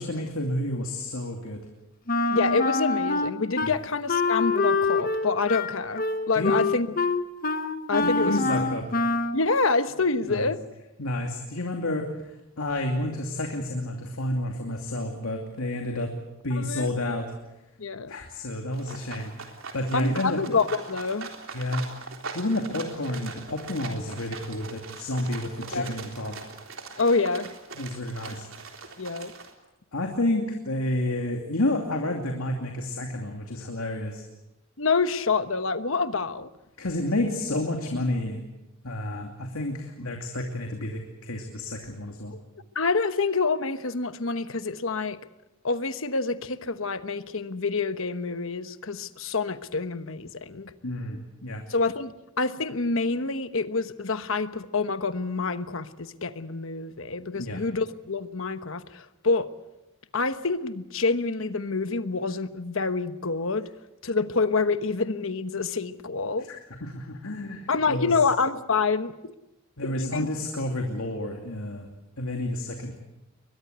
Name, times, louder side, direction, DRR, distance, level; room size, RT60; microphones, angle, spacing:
voice 1, 0.0-1.6 3.6-3.7 6.3-6.5 8.0-8.8 10.2-10.5 11.0-12.1 12.6-16.1 16.4-17.3 18.1-20.4 21.5-21.9 22.3-26.3 27.8-28.4 29.9-34.2 36.8-38.4 38.8-42.3 50.8-51.6 57.4-57.6 66.5-66.6 66.8-68.1 69.8-71.9 72.2-72.9, left 1 dB, 80° left, 2 dB, 2.7 m, -30 dB
Wind instrument woodwind instrument, 2.1-3.7 4.1-9.4, left 3 dB, 40° left, 1.3 m, -25 dB
voice 2, 2.3-6.9 7.9-8.6 9.3-10.6 16.6-16.9 17.8-18.1 19.9-21.3 25.7-25.9 27.0-27.5 29.0-29.3 34.8-36.5 42.3-42.4 42.7-45.2 45.6-50.7 51.7-59.5 60.1-63.7 64.0-66.5 67.7-69.3 69.8-70.3, left 4 dB, 65° left, 11 dB, 1.2 m, -27 dB
sound 1, 18.7-29.5, right 4 dB, 65° right, 3.7 m, -41 dB
22.5 x 21.0 x 8.1 m, 0.93 s
head